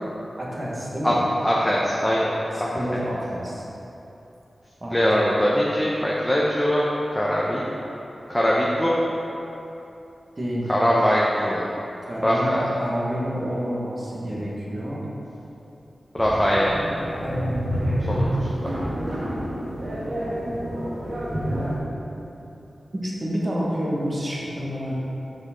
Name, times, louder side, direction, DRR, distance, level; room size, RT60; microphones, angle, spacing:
voice 1, 0.4-1.2 2.5-3.6 4.8-5.4 10.3-10.7 12.1-12.5 12.7-15.0 17.2-18.0 23.0-24.9, equal, 35° right, -5 dB, 1.5 m, -29 dB
voice 2, 1.4-2.3 4.9-7.6 8.3-9.0 10.7-11.7 12.2-12.7 16.1-16.7 18.1-18.7, equal, 10° left, -5 dB, 0.8 m, -22 dB
sound 1, 16.2-21.8, equal, 60° right, 1.5 m, -28 dB
6.4 x 5.0 x 4.4 m, 2.9 s
wide cardioid pair, 75°, 0 cm